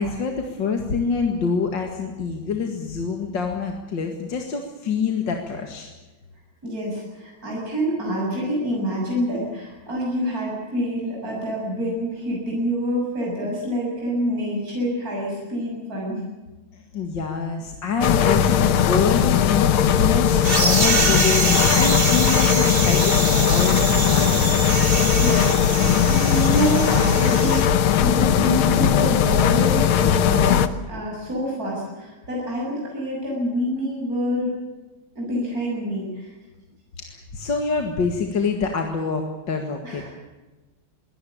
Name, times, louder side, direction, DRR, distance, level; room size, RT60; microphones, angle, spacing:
voice 1, 0.0-5.9 16.7-24.5 37.0-40.1, left 5 dB, 60° left, 3 dB, 2.6 m, -26 dB
voice 2, 6.6-16.2 25.2-34.5 35.2-36.3 39.8-40.1, equal, 45° right, -3 dB, 7.5 m, -27 dB
sound 1, 18.0-30.7, left 9 dB, 80° left, 1.9 m, -19 dB
sound 2, 20.4-27.7, right 3 dB, 25° right, 2.1 m, -25 dB
23.0 x 17.5 x 8.6 m, 1.2 s
omnidirectional pair, 2.3 m